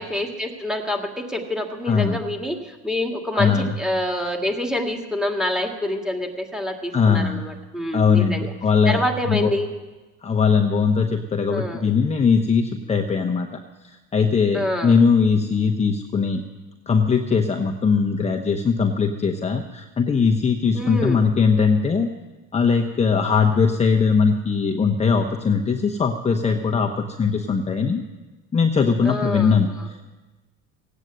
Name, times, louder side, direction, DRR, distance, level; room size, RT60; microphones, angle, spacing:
voice 1, 0.0-8.5 8.9-9.7 11.5-11.8 14.5-14.9 20.7-21.2 29.0-29.9, left 1 dB, ahead, 2 dB, 2.1 m, -27 dB
voice 2, 1.9-2.2 3.3-3.7 6.9-7.4 7.9-9.5 10.2-16.4 16.9-22.1 22.5-28.0 28.5-30.1, left 5 dB, 20° left, 4 dB, 1.0 m, -20 dB
17.0 x 9.0 x 8.1 m, 1.2 s
supercardioid pair, 110°, 32 cm